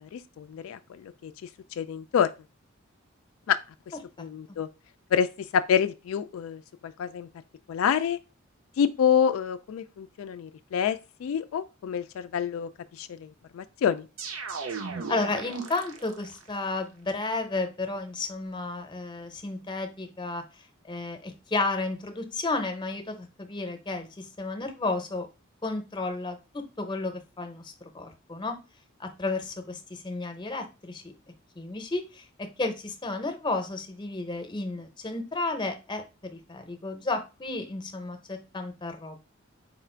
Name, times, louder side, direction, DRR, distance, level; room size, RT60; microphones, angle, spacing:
voice 1, 0.0-1.3 1.8-2.3 3.5-3.6 4.2-4.7 5.1-5.3 5.5-6.6 7.0-7.3 7.7-8.2 8.8-12.7 13.0-13.3 13.5-14.1, left 8 dB, 85° left, 0.3 m, -27 dB
sound 1, 14.2-16.4, right 4 dB, 85° right, 0.7 m, -36 dB
voice 2, 15.1-20.4 20.9-25.3 25.6-28.6 29.0-31.0 31.6-39.2, left 3 dB, 25° left, 0.7 m, -32 dB
4.2 x 2.4 x 4.3 m
head